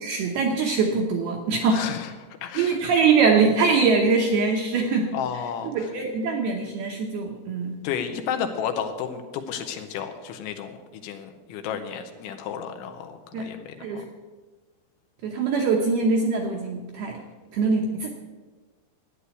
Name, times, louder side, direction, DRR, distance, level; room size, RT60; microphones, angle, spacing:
voice 1, 0.0-1.8 2.6-5.1 5.7-7.7 13.3-13.5 13.8-14.0 15.2-17.2 17.5-18.1, right 4 dB, 75° right, 1 dB, 2.4 m, -23 dB
voice 2, 1.7-2.1 2.4-2.8 5.1-5.9 7.8-10.8 11.0-14.0, left 8 dB, 75° left, 6 dB, 3.1 m, -32 dB
13.0 x 9.8 x 8.3 m, 1.3 s
omnidirectional pair, 5.9 m